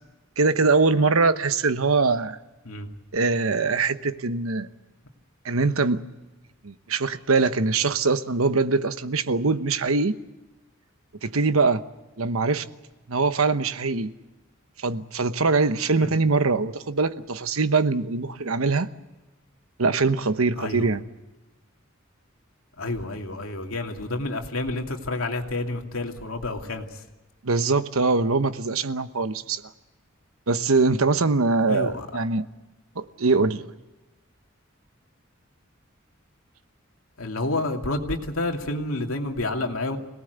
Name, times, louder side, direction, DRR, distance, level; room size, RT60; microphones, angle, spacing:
voice 1, 0.4-2.4 3.1-4.7 5.4-6.0 6.6-10.1 11.2-11.8 12.2-12.6 13.1-14.1 14.8-18.9 19.8-21.0 27.4-29.6 30.5-32.5 33.0-33.7, right 3 dB, 85° right, 11 dB, 1.1 m, -22 dB
voice 2, 20.6-20.9 22.8-27.0 31.7-32.1 37.2-40.0, left 2 dB, 85° left, 3 dB, 2.6 m, -29 dB
25.5 x 18.5 x 8.1 m, 1.1 s
head